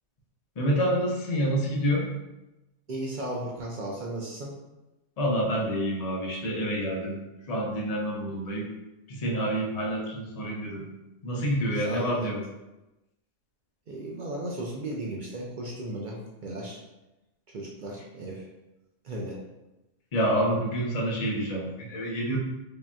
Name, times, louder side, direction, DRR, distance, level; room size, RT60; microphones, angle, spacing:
voice 1, 0.6-2.1 5.2-7.2 7.5-8.7 9.1-10.9 11.2-12.4 20.1-22.4, equal, 35° left, -3 dB, 0.7 m, -28 dB
voice 2, 2.9-4.5 11.8-12.3 13.9-16.8 17.5-18.5 19.0-19.4, right 1 dB, 55° right, -2 dB, 0.6 m, -35 dB
4.9 x 2.8 x 2.3 m, 1.0 s
omnidirectional pair, 1.3 m